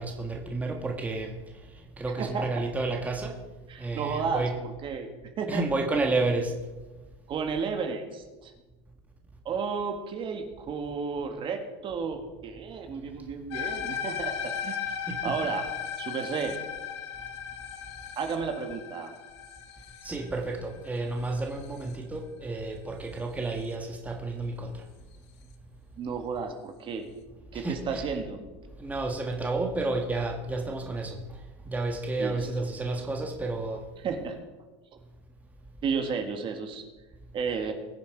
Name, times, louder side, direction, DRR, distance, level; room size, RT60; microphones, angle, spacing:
voice 1, 0.0-1.4 2.0-3.4 3.8-4.6 5.5-6.5 15.1-15.4 20.0-24.8 27.5-28.1 28.8-33.8, right 2 dB, 10° right, 2 dB, 1.6 m, -31 dB
voice 2, 2.2-2.5 3.7-5.1 5.4-5.6 7.3-8.5 9.5-14.8 15.2-15.6 16.0-16.6 18.2-19.1 26.0-27.1 27.5-28.4 32.2-32.4 34.0-34.4 35.8-36.8 37.3-37.7, right 5 dB, 35° right, 5 dB, 1.8 m, -32 dB
sound 1, 13.5-21.9, left 8 dB, 80° left, 1.4 m, -36 dB
21.0 x 7.1 x 4.7 m, 1.2 s
supercardioid pair, 120°, 14 cm